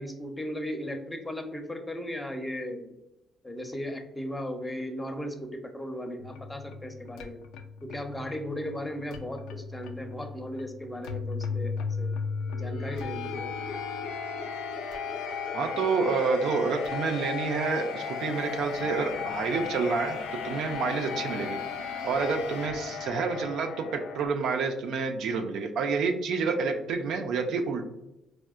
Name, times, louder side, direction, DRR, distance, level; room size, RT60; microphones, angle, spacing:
voice 1, 0.0-2.9 3.4-7.4 7.8-12.1 12.5-13.5, equal, 15° left, 5 dB, 0.6 m, -36 dB
sound 1, 6.2-24.3, left 5 dB, 85° left, 0.3 m, -36 dB
voice 2, 15.5-20.2 20.4-21.6 22.0-27.8, right 4 dB, 75° right, 4 dB, 0.4 m, -28 dB
4.4 x 2.0 x 2.4 m, 0.89 s
supercardioid pair, 60°, 0 cm